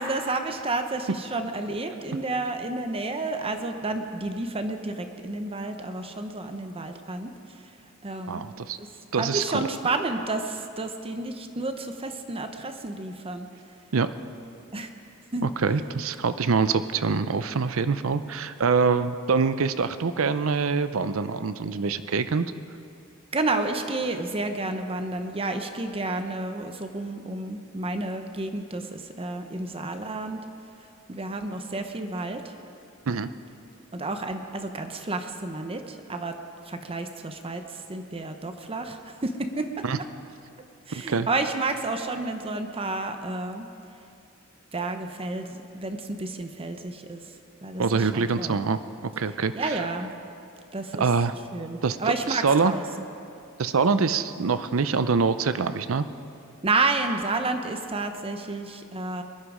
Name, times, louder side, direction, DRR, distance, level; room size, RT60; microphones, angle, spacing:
voice 1, 0.0-7.3 8.0-8.4 8.8-8.9 9.2-13.5 14.7-14.9 15.3-15.5 23.3-30.4 31.1-32.5 33.9-36.4 36.7-39.7 40.9-43.7 44.7-47.2 47.6-48.6 49.5-50.1 50.7-51.0 51.5-52.8 56.6-59.2, right 2 dB, 25° right, 7 dB, 0.8 m, -30 dB
voice 2, 8.3-8.8 9.1-9.7 13.9-14.1 15.4-22.5 33.1-33.3 39.8-40.0 40.9-41.3 47.8-49.8 51.0-51.3 51.8-52.7 53.6-56.1, right 5 dB, 70° right, 12 dB, 0.6 m, -25 dB
21.5 x 11.0 x 5.0 m, 2.6 s
head